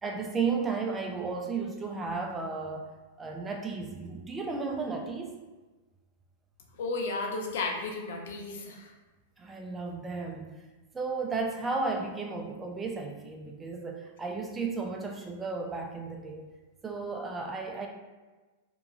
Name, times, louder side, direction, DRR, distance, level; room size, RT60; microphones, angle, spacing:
voice 1, 0.0-2.9 3.2-5.4 9.4-10.6 10.9-16.4 16.8-17.9, right 4 dB, 15° right, 2 dB, 0.4 m, -34 dB
voice 2, 6.8-8.9, left 3 dB, 70° left, 1 dB, 0.5 m, -33 dB
2.9 x 2.3 x 2.4 m, 1.2 s
hypercardioid pair, 110°, 0 cm